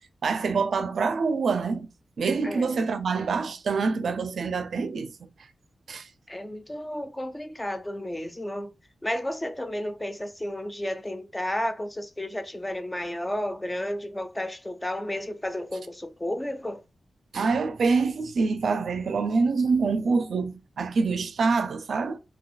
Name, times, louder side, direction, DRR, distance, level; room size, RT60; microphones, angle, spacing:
voice 1, 0.2-1.9 2.2-5.3 5.9-6.1 17.3-22.2, right 4 dB, 75° right, 0.4 m, -26 dB
voice 2, 2.4-2.9 6.3-8.7 9.0-16.8, left 1 dB, 10° left, 0.4 m, -32 dB
2.7 x 2.4 x 3.8 m
wide cardioid pair, 155°, 0 cm